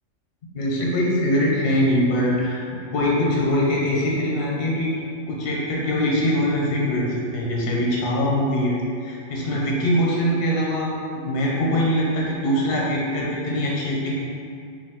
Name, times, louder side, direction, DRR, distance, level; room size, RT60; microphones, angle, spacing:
voice 1, 0.5-4.9 5.3-14.1, equal, 55° left, -4 dB, 0.9 m, -22 dB
5.4 x 2.9 x 2.9 m, 2.4 s
omnidirectional pair, 1.3 m